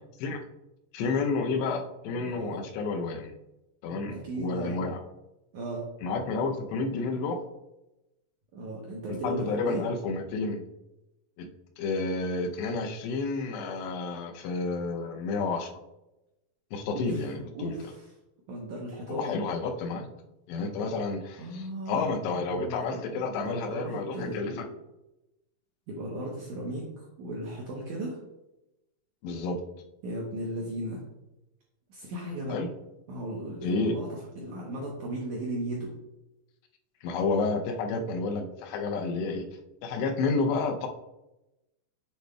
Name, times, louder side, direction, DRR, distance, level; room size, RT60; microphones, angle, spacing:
voice 1, 0.9-3.3 3.8-5.0 6.0-7.4 9.1-10.6 11.4-11.5 11.8-15.7 16.7-17.7 19.1-20.1 20.5-24.5 29.2-29.6 32.5-32.7 33.6-33.9 37.0-39.5 39.8-40.9, left 3 dB, 90° left, 4 dB, 2.9 m, -30 dB
voice 2, 2.2-2.6 4.1-4.8 5.5-5.9 8.5-9.8 16.9-17.2 17.5-18.1 18.5-19.4 21.4-24.6 25.9-28.2 30.0-31.0 31.9-32.6 33.1-35.9, right 1 dB, 75° right, -3 dB, 1.8 m, -36 dB
7.8 x 6.7 x 2.3 m, 0.95 s
omnidirectional pair, 4.8 m